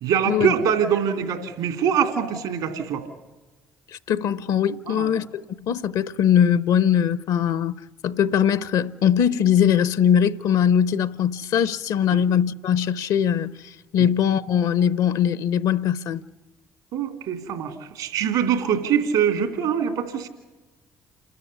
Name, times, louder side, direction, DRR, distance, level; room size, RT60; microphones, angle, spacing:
voice 1, 0.0-3.0 4.9-5.1 12.1-12.2 16.9-20.3, right 8 dB, 80° right, 2.8 m, -23 dB
voice 2, 4.1-7.7 8.0-16.2, left 9 dB, 65° left, 0.7 m, -21 dB
28.0 x 13.5 x 9.7 m
hypercardioid pair, 50°, 7 cm